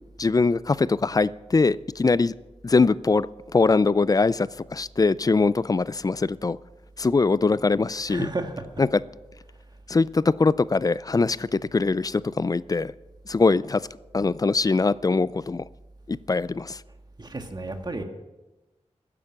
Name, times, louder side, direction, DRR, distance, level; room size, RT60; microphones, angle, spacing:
voice 1, 0.2-2.3 2.6-6.6 7.0-8.3 8.8-9.0 9.9-12.9 13.3-13.8 14.1-15.6 16.1-16.8, left 3 dB, 30° left, 0.4 m, -22 dB
voice 2, 8.1-8.7 17.2-18.0, right 2 dB, 35° right, 1.6 m, -32 dB
15.5 x 9.9 x 6.0 m
wide cardioid pair, 80°, 12 cm